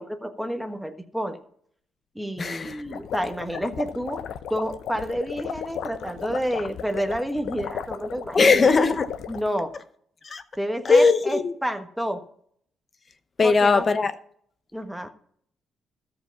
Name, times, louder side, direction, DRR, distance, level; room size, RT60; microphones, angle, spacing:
voice 1, 0.0-1.4 2.1-4.2 4.5-8.6 9.3-9.7 10.6-12.2 13.4-13.9 14.7-15.1, equal, 5° right, 1.2 m, -29 dB
voice 2, 2.4-2.8 8.3-9.1 10.2-10.4 10.8-11.5 13.4-14.1, left 4 dB, 40° left, 0.9 m, -19 dB
sound 1, 2.7-9.5, left 8 dB, 75° left, 0.7 m, -36 dB
13.5 x 4.9 x 5.8 m
cardioid pair, 90°, 0 cm